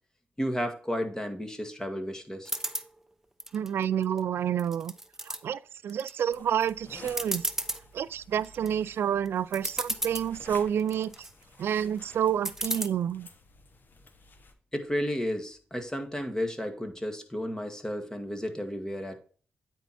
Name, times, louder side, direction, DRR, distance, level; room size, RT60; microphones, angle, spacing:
voice 1, 0.4-2.5 14.7-19.2, equal, 15° left, 1.7 m, -32 dB
sound 1, 2.4-2.9 3.4-4.2 4.6-5.4 5.9-6.3 6.7-6.8 7.1-7.8 8.3-8.7 9.3-9.4 9.5-10.3 10.8-11.3 12.4-12.9, right 1 dB, 10° right, 0.7 m, -33 dB
voice 2, 3.5-4.9 5.3-7.4 7.9-11.1 11.6-13.3, right 9 dB, 80° right, 0.3 m, -29 dB
sound 2, 6.3-14.5, left 3 dB, 55° left, 1.2 m, -52 dB
9.1 x 4.5 x 4.1 m
cardioid pair, 65°, 4 cm